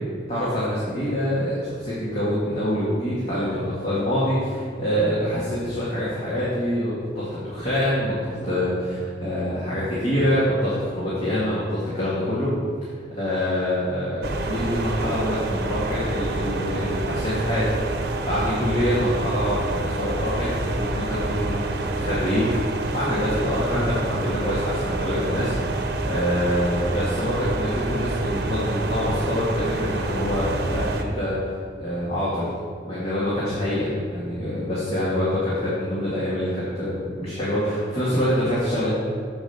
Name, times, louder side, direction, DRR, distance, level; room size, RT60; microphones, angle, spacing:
voice 1, 0.3-12.5 12.8-22.6 22.9-25.8 26.1-31.5 31.8-32.5 32.8-38.9, equal, 35° left, -9 dB, 1.9 m, -25 dB
sound 1, 14.2-31.0, right 2 dB, 60° right, 0.8 m, -27 dB
7.2 x 5.1 x 6.7 m, 2.2 s
head